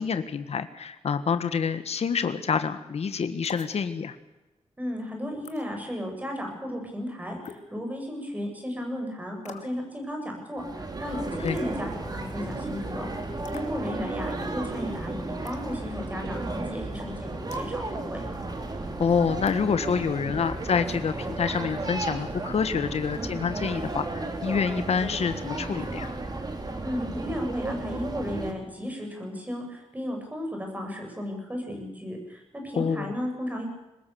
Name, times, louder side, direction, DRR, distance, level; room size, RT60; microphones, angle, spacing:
voice 1, 0.0-4.1 11.4-11.6 19.0-26.1 32.7-33.1, left 6 dB, 65° left, 10 dB, 1.5 m, -27 dB
sound 1, 3.5-3.8 5.5-5.6 7.5-7.7 9.5-9.8 11.5-11.7 13.5-13.7 15.5-15.7 17.5-17.7 19.5-19.7, left 6 dB, 90° left, 2.4 m, -43 dB
voice 2, 4.8-13.1 13.5-18.2 26.8-33.6, equal, 15° right, 2 dB, 7.9 m, -34 dB
sound 2, 10.6-28.5, right 2 dB, 35° right, 3.7 m, -34 dB
23.5 x 20.0 x 7.0 m, 1.0 s
wide cardioid pair, 125°, 12 cm